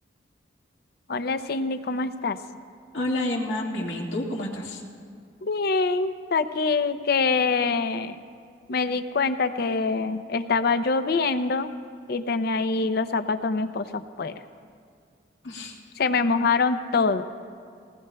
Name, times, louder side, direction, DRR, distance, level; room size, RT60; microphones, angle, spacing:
voice 1, 1.1-2.4 5.4-8.2 8.7-11.7 12.1-14.4 16.0-17.2, left 4 dB, 55° left, 10 dB, 0.6 m, -25 dB
voice 2, 2.9-4.8 12.8-12.9 15.4-15.8, left 1 dB, 80° left, -2 dB, 1.9 m, -29 dB
21.0 x 18.0 x 2.3 m, 2.2 s
head